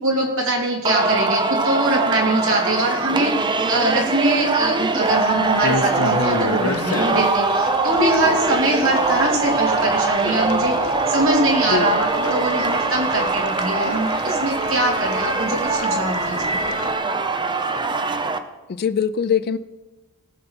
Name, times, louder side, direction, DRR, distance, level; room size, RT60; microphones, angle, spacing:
voice 1, 0.0-16.6, right 1 dB, 65° right, 0 dB, 2.6 m, -23 dB
Singing, 0.9-18.4, right 3 dB, 20° right, 0.6 m, -22 dB
sound 1, 5.0-16.9, left 4 dB, 85° left, 0.7 m, -32 dB
voice 2, 18.7-19.6, left 7 dB, 45° left, 15 dB, 0.4 m, -22 dB
18.0 x 6.6 x 4.4 m, 1.1 s
head